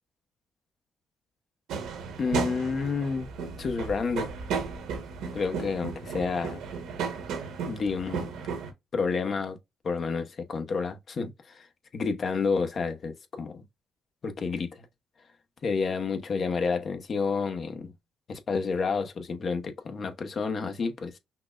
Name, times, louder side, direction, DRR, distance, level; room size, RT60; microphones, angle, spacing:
sound 1, 1.7-8.7, right 5 dB, 90° right, 1.1 m, -34 dB
voice 1, 2.2-3.3 3.6-4.3 5.3-6.6 7.7-8.3 8.9-9.6 9.8-11.7 11.9-13.6 14.2-14.9 15.6-17.9 18.3-21.2, left 5 dB, 50° left, 0.9 m, -30 dB
5.8 x 2.1 x 2.4 m
cardioid pair, 90°, 0 cm